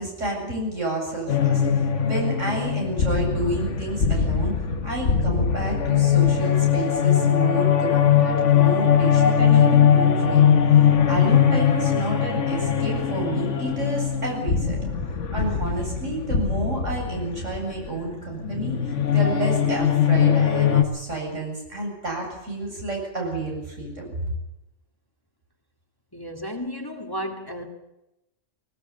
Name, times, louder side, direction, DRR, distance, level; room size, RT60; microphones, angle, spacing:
voice 1, 0.0-14.8 15.3-24.0, right 2 dB, 75° right, -1 dB, 8.1 m, -30 dB
sound 1, 1.3-20.8, left 8 dB, 70° left, 1.6 m, -20 dB
voice 2, 26.1-27.6, equal, 15° left, 3 dB, 2.0 m, -33 dB
19.5 x 19.5 x 8.5 m, 0.92 s
omnidirectional pair, 1.3 m